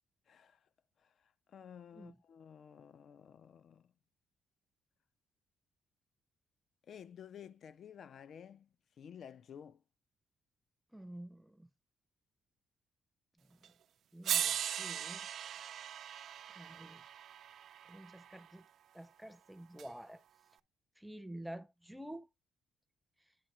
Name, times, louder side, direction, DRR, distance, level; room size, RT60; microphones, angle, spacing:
voice 1, 0.3-0.6 1.0-3.9 6.9-8.7 9.0-9.8, left 8 dB, 60° left, 0.4 m, -53 dB
voice 2, 10.9-11.7 13.5-13.7 14.1-15.3 16.5-17.1 17.9-18.7 18.9-20.2 21.0-22.3, right 1 dB, 5° right, 0.6 m, -49 dB
sound 1, 13.6-13.7 14.2-18.4 19.8-19.9, right 9 dB, 65° right, 0.4 m, -39 dB
10.0 x 3.6 x 4.2 m
cardioid pair, 90°, 0 cm